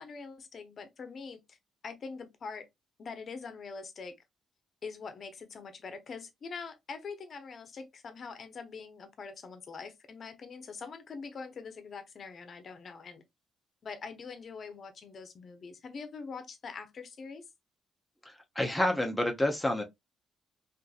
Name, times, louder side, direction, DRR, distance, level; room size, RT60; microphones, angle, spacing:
voice 1, 0.0-1.6 1.8-2.7 3.0-4.1 4.8-13.2 13.8-17.4, left 5 dB, 50° left, 0.6 m, -44 dB
voice 2, 18.6-19.8, left 1 dB, 5° left, 0.6 m, -28 dB
2.6 x 2.5 x 2.3 m
cardioid pair, 90°, 0 cm